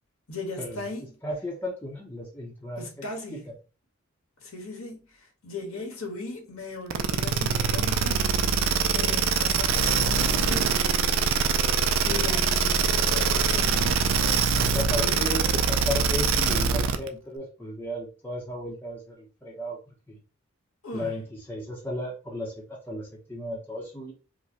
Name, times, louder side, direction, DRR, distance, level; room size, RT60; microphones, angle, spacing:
voice 1, 0.3-1.0 2.8-3.4 4.4-8.3 8.9-10.8 11.8-13.9 14.7-15.7 20.8-21.1, left 2 dB, 90° left, 1.4 m, -38 dB
voice 2, 1.2-3.5 14.6-19.8 20.1-20.2 20.9-24.1, left 1 dB, 10° left, 0.7 m, -35 dB
sound 1, 6.9-17.1, right 6 dB, 65° right, 0.4 m, -23 dB
4.8 x 2.2 x 2.8 m
head